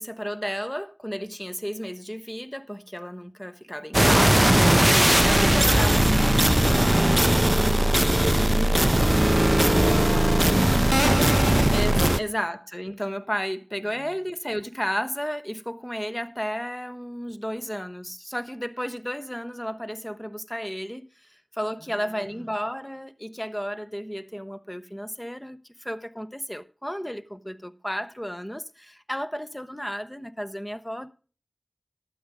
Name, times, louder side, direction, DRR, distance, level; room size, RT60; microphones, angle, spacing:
voice 1, 0.0-6.4 8.5-9.0 11.7-31.1, equal, 10° left, 0.9 m, -33 dB
sound 1, 3.9-12.2, right 1 dB, 20° right, 0.4 m, -19 dB
voice 2, 4.5-4.8 5.5-12.2 13.9-14.0 21.8-22.5, left 1 dB, 50° left, 5.3 m, -39 dB
12.0 x 7.4 x 4.8 m
cardioid pair, 40°, 0 cm